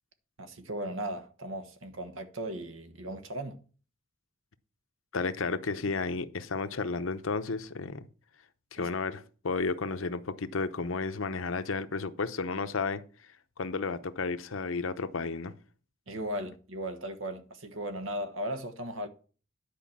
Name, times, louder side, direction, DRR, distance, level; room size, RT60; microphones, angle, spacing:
voice 1, 0.4-3.6 8.8-8.9 16.1-19.1, right 1 dB, 90° right, 1.3 m, -37 dB
voice 2, 5.1-8.1 8.7-13.0 13.6-15.5, left 4 dB, 90° left, 0.8 m, -32 dB
10.5 x 5.0 x 7.2 m
head